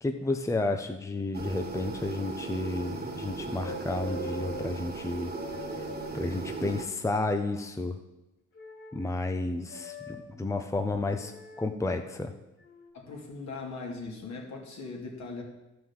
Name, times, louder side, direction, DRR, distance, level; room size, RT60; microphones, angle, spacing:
voice 1, 0.0-5.3 5.8-5.9 6.1-8.0 8.9-11.3 11.6-12.3, left 2 dB, 10° left, 6 dB, 0.8 m, -31 dB
sound 1, 1.3-6.9, right 4 dB, 30° right, 1.6 m, -37 dB
sound 2, 3.6-4.7 5.3-7.0 8.5-9.1 9.7-10.2 11.1-11.7 12.6-12.9, left 1 dB, 45° left, 3.4 m, -43 dB
voice 2, 12.9-15.4, left 3 dB, 65° left, 0 dB, 2.9 m, -39 dB
12.0 x 6.1 x 7.4 m, 0.96 s
cardioid pair, 90°, 30 cm